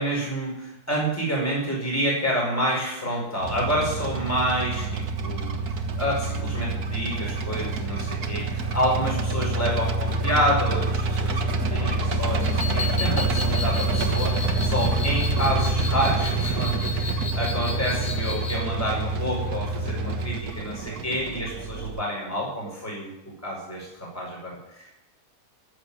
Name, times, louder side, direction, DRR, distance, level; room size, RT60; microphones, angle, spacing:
voice 1, 0.0-5.5 6.0-11.4 11.7-23.1 23.4-23.9 24.1-25.0, equal, 10° left, -3 dB, 4.9 m, -28 dB
sound 1, 3.4-22.0, right 2 dB, 75° right, 1.8 m, -27 dB
sound 2, 12.4-18.6, left 4 dB, 45° left, 1.3 m, -34 dB
15.0 x 7.4 x 10.0 m, 0.89 s
omnidirectional pair, 1.7 m